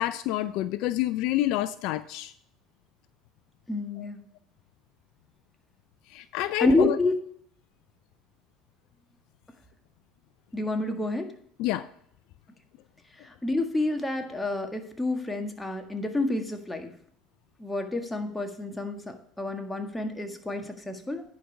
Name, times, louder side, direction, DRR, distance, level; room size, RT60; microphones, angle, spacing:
voice 1, 0.0-2.3 6.1-6.9 11.6-11.9, left 15 dB, 65° left, 0.4 m, -28 dB
voice 2, 3.7-4.2 6.6-7.2 10.5-11.3 13.1-16.9 17.6-21.2, left 2 dB, 10° left, 1.6 m, -29 dB
10.0 x 5.2 x 5.8 m
hypercardioid pair, 75°, 0 cm